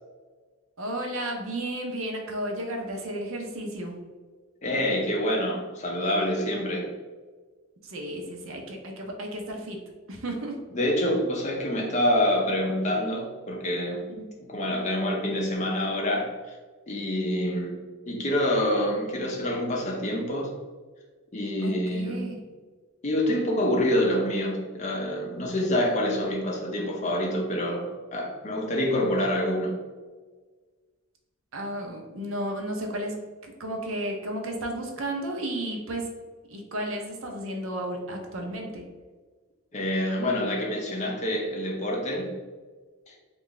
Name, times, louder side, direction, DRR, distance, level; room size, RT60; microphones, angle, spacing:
voice 1, 0.8-4.0 7.8-9.8 10.1-10.6 14.2-14.3 21.6-22.4 31.5-33.2 33.4-36.1 36.5-38.8, right 1 dB, 65° right, 2 dB, 0.6 m, -33 dB
voice 2, 4.6-6.9 10.7-14.0 14.4-16.6 16.9-17.7 18.1-20.5 21.3-22.2 23.0-27.8 28.1-29.7 39.7-42.3 43.1-43.2, left 1 dB, 30° left, -1 dB, 0.5 m, -26 dB
3.2 x 2.4 x 3.8 m, 1.4 s
head